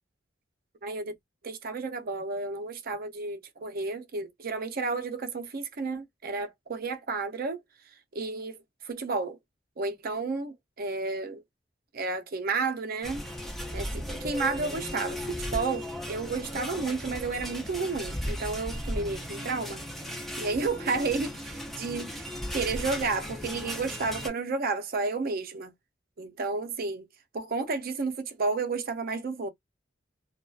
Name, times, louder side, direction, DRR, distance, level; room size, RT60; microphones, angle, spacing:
voice 1, 0.8-1.1 1.4-7.6 8.1-9.4 9.8-11.4 11.9-19.8 20.4-21.3 21.8-25.7 26.2-27.1 27.3-29.5, right 4 dB, 50° right, 0.5 m, -32 dB
sound 1, 13.0-24.3, equal, ahead, 0.6 m, -36 dB
2.6 x 2.3 x 2.3 m
head